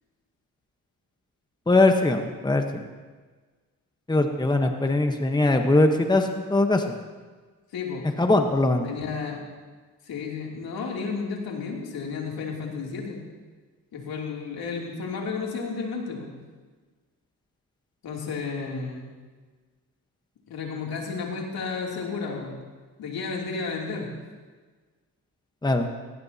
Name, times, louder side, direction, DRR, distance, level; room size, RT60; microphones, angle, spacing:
voice 1, 1.7-2.8 4.1-6.8 8.2-8.9 25.6-25.9, left 2 dB, 10° left, 5 dB, 1.1 m, -21 dB
voice 2, 7.7-8.1 8.8-9.4 10.0-13.2 13.9-16.3 18.0-19.1 20.5-22.5 23.0-24.1, left 5 dB, 80° left, -1 dB, 3.0 m, -32 dB
18.0 x 17.5 x 2.9 m, 1.4 s
cardioid pair, 85°, 36 cm